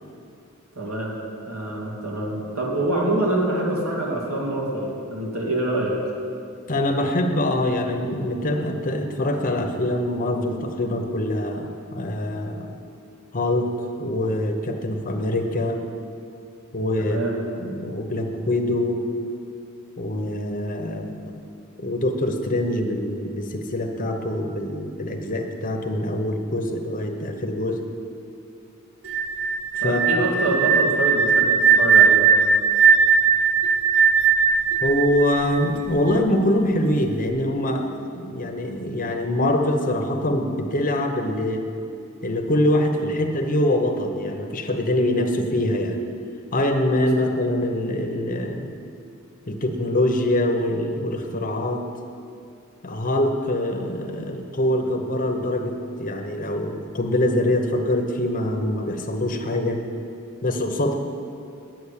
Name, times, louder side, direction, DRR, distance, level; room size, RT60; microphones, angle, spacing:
voice 1, 0.8-1.1 1.5-6.0 17.0-17.4 29.8-32.3, right 1 dB, 80° right, -3 dB, 2.3 m, -25 dB
voice 2, 6.7-12.7 13.3-13.7 14.0-15.8 16.7-17.2 17.6-19.0 20.0-21.3 21.8-27.8 29.7-30.3 34.8-41.7 42.2-46.0 46.5-48.7 49.5-51.9 52.8-59.8 60.4-61.0, left 1 dB, 40° left, 4 dB, 0.9 m, -24 dB
sound 1, 29.0-36.0, right 6 dB, 65° right, 0.7 m, -18 dB
9.2 x 7.2 x 8.3 m, 2.5 s
head